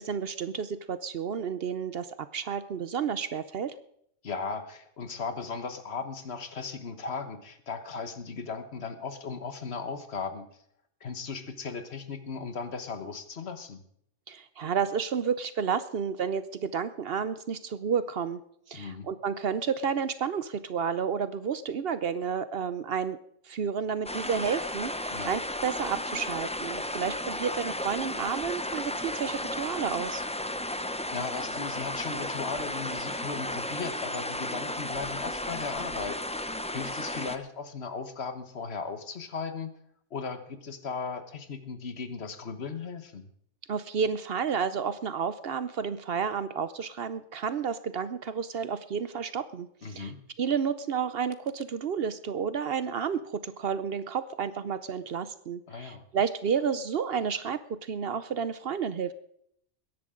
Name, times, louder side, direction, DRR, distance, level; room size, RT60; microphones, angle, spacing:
voice 1, 0.0-2.1 2.3-3.8 14.3-18.4 18.7-23.2 23.5-30.2 43.7-50.1 50.4-59.1, right 7 dB, 60° right, 13 dB, 0.8 m, -31 dB
voice 2, 4.2-10.5 11.0-13.8 18.7-19.1 25.1-25.3 31.1-39.7 40.1-43.3 49.8-50.2 55.7-56.0, left 5 dB, 60° left, 9 dB, 1.4 m, -37 dB
sound 1, 24.0-37.4, left 1 dB, 10° left, 0.3 m, -34 dB
21.5 x 10.5 x 3.8 m, 0.68 s
omnidirectional pair, 1.3 m